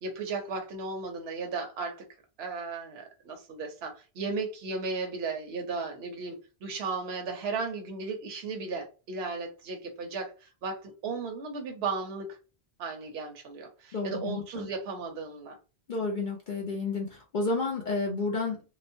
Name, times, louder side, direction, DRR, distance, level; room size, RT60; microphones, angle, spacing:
voice 1, 0.0-2.0 2.4-12.4 12.8-15.6, right 4 dB, 70° right, 0.9 m, -35 dB
voice 2, 13.9-14.7 15.9-18.6, left 3 dB, 55° left, 0.7 m, -31 dB
2.9 x 2.0 x 2.5 m
omnidirectional pair, 1.1 m